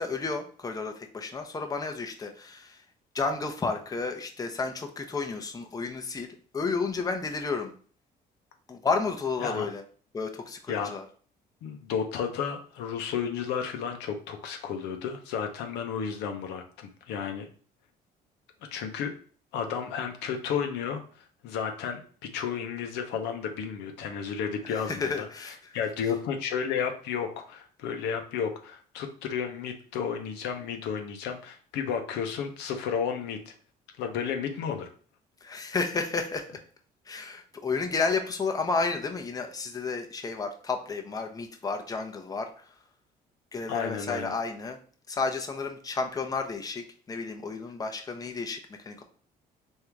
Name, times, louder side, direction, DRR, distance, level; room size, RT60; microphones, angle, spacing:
voice 1, 0.0-2.8 3.1-6.3 6.5-7.7 8.7-9.8 10.1-11.0 24.7-25.8 35.4-36.5 37.1-42.6 43.5-44.8 45.1-49.0, left 4 dB, 20° left, 5 dB, 0.7 m, -32 dB
voice 2, 11.6-17.5 18.7-19.1 19.5-21.0 21.4-22.0 22.3-25.1 25.7-33.5 34.0-34.9 43.7-44.3, left 7 dB, 90° left, 5 dB, 0.7 m, -32 dB
3.6 x 2.7 x 4.5 m, 0.43 s
cardioid pair, 110°, 17 cm